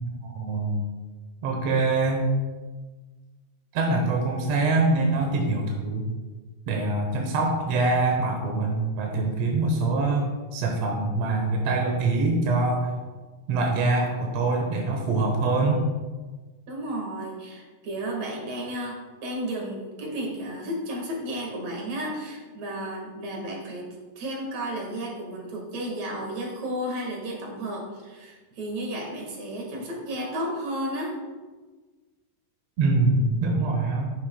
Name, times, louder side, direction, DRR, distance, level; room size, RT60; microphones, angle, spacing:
voice 1, 0.0-0.8 1.4-2.3 3.7-6.0 6.7-10.2 10.5-12.9 13.5-15.8 32.8-34.1, right 3 dB, 70° right, 1 dB, 1.6 m, -24 dB
voice 2, 16.7-31.2, right 1 dB, 55° right, -1 dB, 2.7 m, -33 dB
11.0 x 9.9 x 2.3 m, 1.3 s
omnidirectional pair, 4.1 m